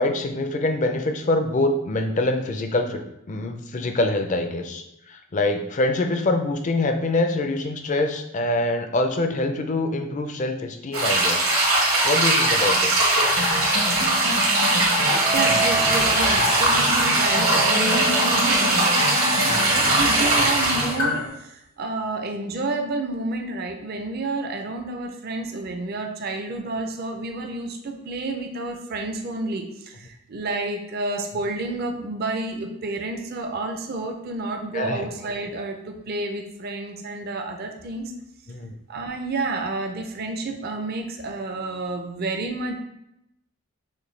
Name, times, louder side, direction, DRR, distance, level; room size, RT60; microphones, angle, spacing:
voice 1, 0.0-11.5 12.0-13.1 34.7-35.1 38.5-38.7, left 2 dB, 35° left, 6 dB, 0.4 m, -25 dB
sound 1, 10.9-20.9, right 1 dB, 80° right, 1.6 m, -20 dB
sound 2, 13.1-21.3, left 2 dB, 70° left, 0.8 m, -30 dB
sound 3, 13.6-21.3, right 3 dB, 65° right, 0.8 m, -30 dB
voice 2, 15.3-38.1 38.9-42.8, right 2 dB, 45° right, 4 dB, 0.5 m, -30 dB
6.4 x 2.2 x 3.2 m, 0.84 s
head